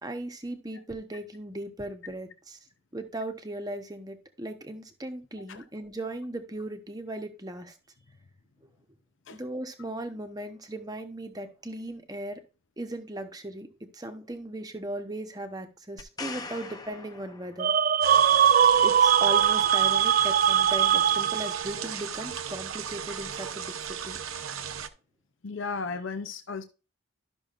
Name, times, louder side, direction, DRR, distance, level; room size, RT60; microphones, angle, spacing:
voice 1, 0.0-2.6 2.9-7.7 9.3-12.4 12.8-13.7 13.9-17.7 18.8-24.2, right 1 dB, 20° right, 1.0 m, -37 dB
sound 1, 16.0-18.0 21.6-21.7, left 3 dB, 20° left, 0.7 m, -42 dB
sound 2, 17.6-21.8, right 9 dB, 40° right, 0.3 m, -21 dB
sound 3, 18.0-24.9, right 7 dB, 90° right, 0.8 m, -37 dB
voice 2, 25.4-26.6, left 4 dB, 65° left, 0.7 m, -34 dB
12.5 x 6.2 x 2.5 m
head